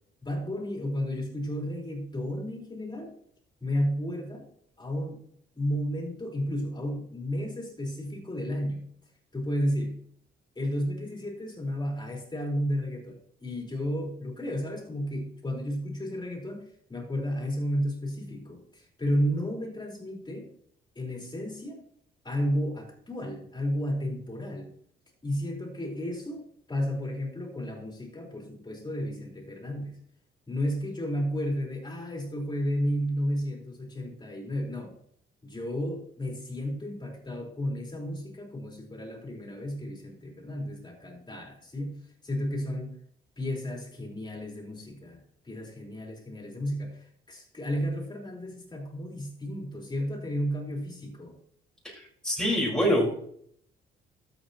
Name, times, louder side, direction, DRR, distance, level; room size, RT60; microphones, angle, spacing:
voice 1, 0.2-3.2 3.6-4.5 4.8-5.2 5.6-8.8 9.3-10.0 10.6-20.5 21.0-21.8 22.2-24.7 25.2-30.0 30.5-35.0 35.4-43.0 43.4-51.4, equal, 20° left, 1 dB, 4.1 m, -32 dB
voice 2, 51.8-53.2, equal, 5° left, -4 dB, 4.4 m, -26 dB
13.0 x 8.3 x 2.9 m, 0.64 s
cardioid pair, 90°, 20 cm